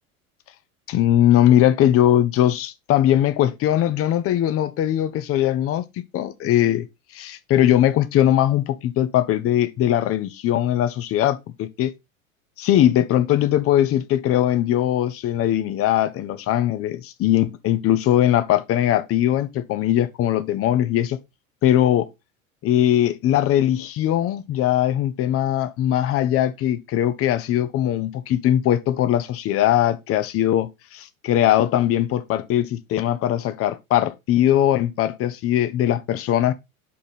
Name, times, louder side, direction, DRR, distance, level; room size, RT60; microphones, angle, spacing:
voice 1, 0.9-5.9 6.1-6.9 7.1-11.9 12.6-21.2 21.6-22.1 22.6-36.5, left 12 dB, 35° left, 0.8 m, -20 dB
5.4 x 5.1 x 4.2 m
figure-of-eight pair, 80°, 42 cm